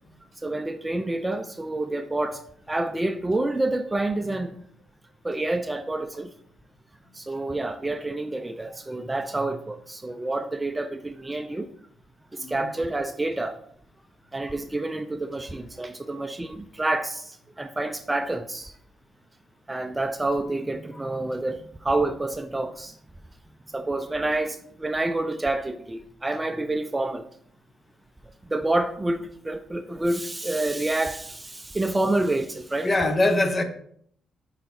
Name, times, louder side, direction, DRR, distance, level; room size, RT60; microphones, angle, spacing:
voice 1, 0.4-4.6 5.2-6.3 7.1-11.7 12.3-13.6 14.3-18.7 19.7-23.0 23.7-27.2 28.5-32.9, right 2 dB, 15° right, 0.4 m, -28 dB
voice 2, 12.4-12.7 32.8-33.6, left 2 dB, 30° left, 0.9 m, -23 dB
5.7 x 4.8 x 4.1 m
cardioid pair, 90°, 0 cm